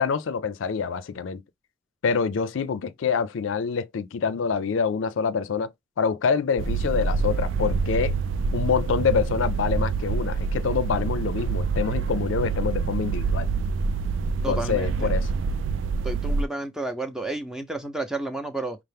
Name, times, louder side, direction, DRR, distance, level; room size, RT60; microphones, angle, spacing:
voice 1, 0.0-1.4 2.0-5.7 6.0-8.2 8.5-13.5 14.5-15.3, left 6 dB, 90° left, 0.4 m, -26 dB
sound 1, 6.6-16.5, right 4 dB, 80° right, 0.3 m, -26 dB
voice 2, 14.4-15.1 16.0-18.8, right 2 dB, 5° right, 0.6 m, -31 dB
5.5 x 2.0 x 3.3 m
head